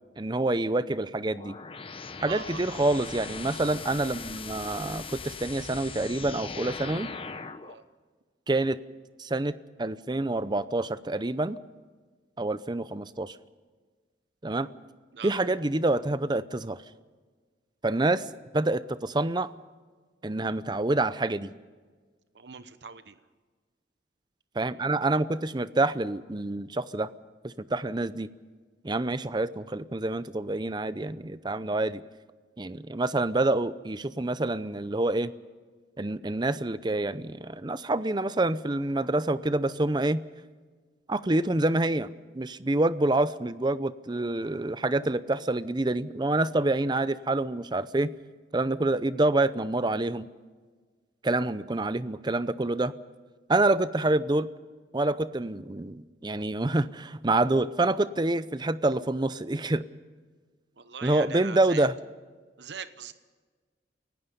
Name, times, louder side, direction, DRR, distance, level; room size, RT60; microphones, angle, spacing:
voice 1, 0.2-1.6 2.2-7.1 8.5-8.8 9.2-9.5 9.8-11.6 12.4-13.4 14.4-14.7 15.2-16.8 17.8-18.3 18.5-19.5 20.2-21.5 24.6-27.1 27.4-28.3 28.8-32.0 32.6-35.3 36.0-40.2 41.1-42.1 42.3-48.1 48.5-50.3 51.2-52.9 53.5-54.5 54.9-59.8 61.0-61.9, right 2 dB, 25° right, 15 dB, 0.7 m, -27 dB
sound 1, 1.3-7.8, left 4 dB, 30° left, 0.9 m, -40 dB
voice 2, 2.2-2.6 7.6-7.8 15.1-15.3 22.3-23.2 60.8-61.9 62.6-63.1, right 6 dB, 75° right, 12 dB, 1.0 m, -41 dB
29.0 x 17.0 x 5.4 m, 1.4 s
head